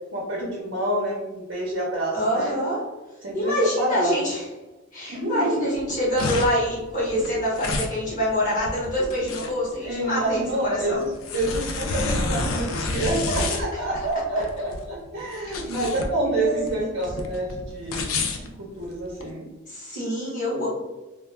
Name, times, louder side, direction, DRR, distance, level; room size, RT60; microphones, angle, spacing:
voice 1, 0.1-2.6 3.2-4.3 5.1-5.7 9.8-18.1 18.4-19.4, right 1 dB, 60° right, -3 dB, 0.6 m, -28 dB
voice 2, 2.1-2.8 3.3-4.4 4.9-11.0 13.3-13.5 15.3-15.4 16.4-16.9 19.7-20.7, equal, 40° left, -6 dB, 1.0 m, -26 dB
sound 1, 5.7-19.3, left 3 dB, 85° left, 0.4 m, -30 dB
2.3 x 2.2 x 3.2 m, 1.1 s
head